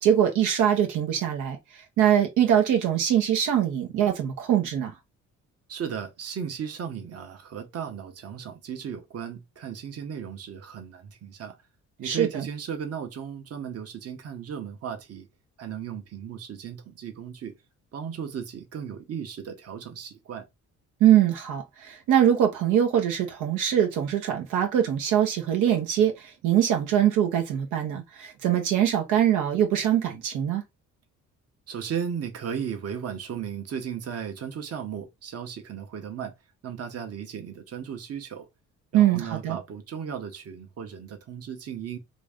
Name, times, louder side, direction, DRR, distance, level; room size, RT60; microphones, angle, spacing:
voice 1, 0.0-1.6 2.0-4.9 12.0-12.4 21.0-26.1 26.4-30.6 38.9-39.6, right 10 dB, 90° right, 1.0 m, -22 dB
voice 2, 5.7-11.6 12.0-15.3 15.6-17.5 17.9-20.5 31.7-36.3 36.6-38.5 38.9-42.0, right 7 dB, 55° right, 1.0 m, -35 dB
3.0 x 2.6 x 3.5 m
cardioid pair, 90°, 30 cm